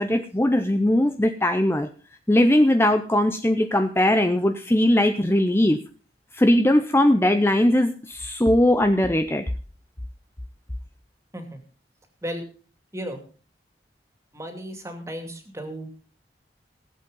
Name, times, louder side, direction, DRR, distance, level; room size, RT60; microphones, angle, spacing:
voice 1, 0.0-1.9 2.3-5.8 6.3-9.4, left 1 dB, 15° left, 8 dB, 0.6 m, -20 dB
voice 2, 14.3-15.9, equal, 15° right, 6 dB, 2.6 m, -34 dB
18.0 x 8.1 x 5.3 m, 0.38 s
head